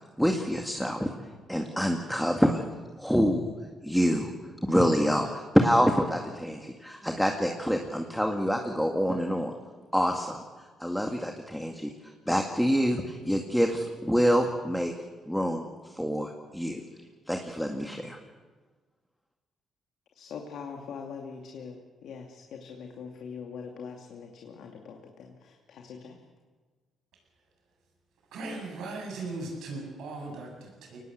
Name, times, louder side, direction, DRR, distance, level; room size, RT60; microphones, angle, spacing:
voice 1, 0.2-1.1 1.5-2.6 3.0-3.4 3.8-4.3 4.7-9.5 9.9-10.4 10.8-14.9 15.3-16.8 17.3-18.2, equal, ahead, 3 dB, 2.1 m, -26 dB
voice 2, 20.1-26.2, left 6 dB, 70° left, 2 dB, 2.5 m, -42 dB
voice 3, 28.3-31.0, right 3 dB, 80° right, 1 dB, 8.0 m, -38 dB
23.5 x 19.5 x 8.1 m, 1.4 s
cardioid pair, 90°, 0 cm